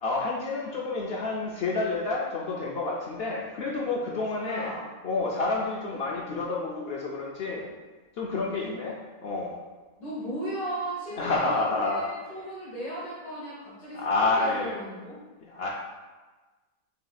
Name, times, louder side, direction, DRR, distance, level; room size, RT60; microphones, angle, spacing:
voice 1, 0.0-4.7 5.0-7.7 8.2-9.6 11.1-12.0 13.9-14.8 15.4-15.7, left 3 dB, 70° left, -2 dB, 0.5 m, -29 dB
voice 2, 4.1-4.9 5.9-6.0 8.5-8.8 10.0-14.1 14.4-15.2, right 1 dB, 85° left, -11 dB, 1.8 m, -36 dB
6.2 x 2.9 x 2.3 m, 1.3 s
omnidirectional pair, 1.6 m